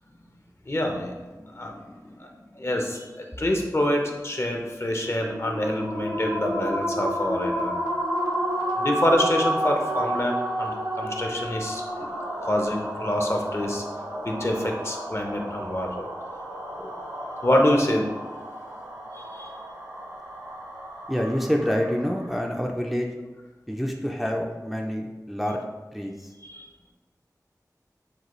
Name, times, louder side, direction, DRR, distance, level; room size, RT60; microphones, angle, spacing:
voice 1, 0.7-1.1 1.5-2.3 2.6-7.7 8.8-11.8 12.4-13.8 14.2-16.1 16.8-16.9 17.4-18.1 19.1-19.5 26.4-26.6, left 1 dB, 40° left, 1 dB, 0.7 m, -26 dB
sound 1, 5.0-22.4, equal, 90° right, 0.9 m, -31 dB
voice 2, 21.1-23.2 23.7-25.6 25.9-26.3, equal, ahead, 0 dB, 0.4 m, -27 dB
6.5 x 2.3 x 3.0 m, 1.2 s
wide cardioid pair, 55°, 7 cm